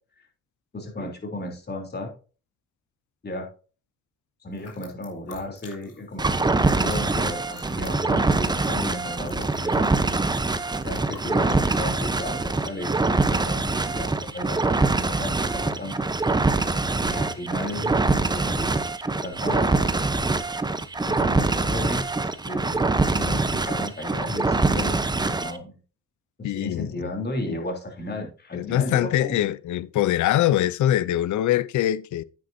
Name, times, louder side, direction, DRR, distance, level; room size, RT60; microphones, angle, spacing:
voice 1, 0.7-2.1 3.2-3.5 4.4-10.2 10.8-16.0 17.0-18.9 19.2-19.9 21.1-25.8 26.4-29.4, left 1 dB, 35° left, 3.4 m, -34 dB
sound 1, 4.5-6.2 6.4-11.6, left 5 dB, 55° left, 3.6 m, -49 dB
sound 2, 6.2-25.6, right 3 dB, 15° right, 0.9 m, -24 dB
voice 2, 26.4-27.1 27.5-27.6 28.5-32.2, left 13 dB, 75° left, 0.6 m, -23 dB
9.6 x 9.3 x 2.7 m
cardioid pair, 90°, 30 cm